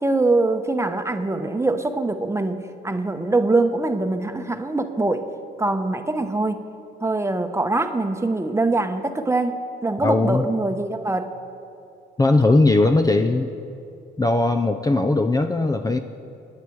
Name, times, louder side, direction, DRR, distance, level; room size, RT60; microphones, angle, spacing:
voice 1, 0.0-5.3 5.6-6.6 7.0-11.3, right 2 dB, 15° right, 7 dB, 1.0 m, -23 dB
voice 2, 10.0-10.5 12.2-13.5 14.2-16.0, left 2 dB, 20° left, 6 dB, 0.6 m, -19 dB
24.5 x 9.6 x 4.7 m, 2.6 s
cardioid pair, 90°, 20 cm